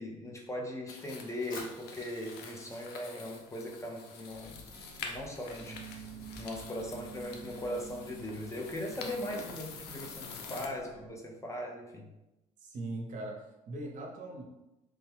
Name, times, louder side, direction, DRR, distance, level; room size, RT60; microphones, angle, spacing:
voice 1, 0.0-4.6 5.0-5.9 6.4-12.1, left 1 dB, 20° left, 0 dB, 0.6 m, -39 dB
sound 1, 0.9-10.7, left 5 dB, 75° left, 0.5 m, -47 dB
Fire, 1.5-5.5, left 3 dB, 60° left, 0.9 m, -52 dB
sound 2, 4.3-11.1, right 5 dB, 20° right, 0.8 m, -50 dB
voice 2, 12.6-14.4, right 2 dB, 50° right, 1 dB, 0.7 m, -40 dB
3.2 x 2.2 x 3.4 m, 0.96 s
supercardioid pair, 85°, 16 cm